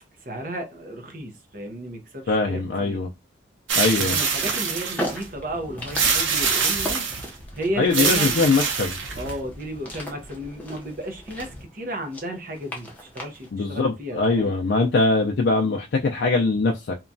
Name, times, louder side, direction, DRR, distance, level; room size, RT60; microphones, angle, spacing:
voice 1, 0.2-3.1 4.1-7.0 7.5-8.5 9.2-14.5, right 1 dB, 45° right, 0.6 m, -33 dB
voice 2, 2.3-3.1 3.8-4.2 7.8-9.0 13.5-16.9, left 3 dB, 65° left, 0.4 m, -22 dB
sound 1, 3.7-5.2 6.0-7.3 7.9-9.4, right 5 dB, 85° right, 0.6 m, -24 dB
sound 2, 3.8-13.5, equal, 10° left, 0.5 m, -38 dB
2.9 x 2.2 x 2.5 m
head